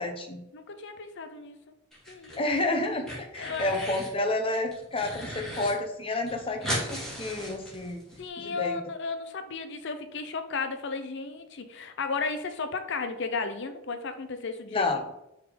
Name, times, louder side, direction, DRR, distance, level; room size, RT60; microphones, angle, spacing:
voice 1, 0.0-0.4 2.4-8.0 8.4-8.8 14.7-15.0, left 2 dB, 25° left, 5 dB, 0.9 m, -30 dB
voice 2, 0.5-1.6 2.1-2.4 3.4-3.9 8.2-15.0, left 4 dB, 55° left, 8 dB, 0.6 m, -34 dB
sound 1, 1.9-2.6 2.9-4.1 4.5-5.7 6.0-6.1 6.3-8.2, equal, ahead, 2.2 m, -36 dB
6.4 x 3.7 x 5.1 m, 0.86 s
head